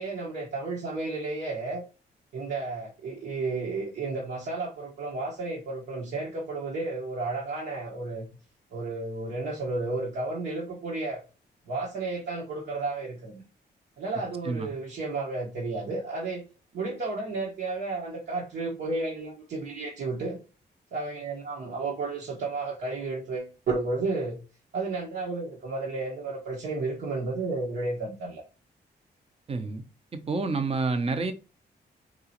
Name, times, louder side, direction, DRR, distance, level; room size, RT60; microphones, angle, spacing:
voice 1, 0.0-1.8 2.3-8.3 8.7-11.2 11.7-13.4 14.0-16.4 16.7-20.4 20.9-24.4 24.7-28.4, right 3 dB, 75° right, 1.4 m, -32 dB
voice 2, 29.5-29.8 30.1-31.3, right 3 dB, 35° right, 0.7 m, -28 dB
4.9 x 3.0 x 2.9 m
wide cardioid pair, 135°, 17 cm